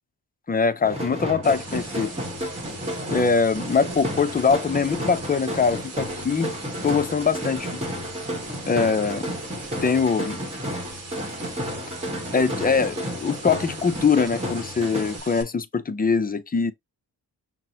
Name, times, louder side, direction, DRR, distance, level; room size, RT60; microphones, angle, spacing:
voice 1, 0.5-2.1 3.1-6.6 6.8-7.8 8.7-9.3 9.8-10.4 12.3-16.7, left 5 dB, 25° left, 0.4 m, -23 dB
sound 1, 0.8-15.2, equal, 15° right, 1.3 m, -32 dB
sound 2, 1.4-15.4, right 3 dB, 40° right, 1.0 m, -41 dB
5.8 x 2.1 x 2.7 m
wide cardioid pair, 110°, 41 cm